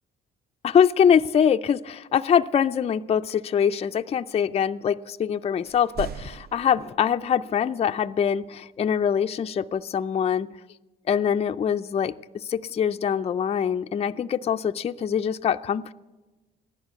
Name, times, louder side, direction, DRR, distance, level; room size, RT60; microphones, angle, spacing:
voice 1, 0.6-10.5 11.1-15.9, left 8 dB, 30° left, 9 dB, 0.4 m, -23 dB
sound 1, 5.6-7.3 9.8-9.9, right 7 dB, 55° right, 0.5 m, -38 dB
14.5 x 11.0 x 8.2 m, 1.2 s
cardioid pair, 90°, 20 cm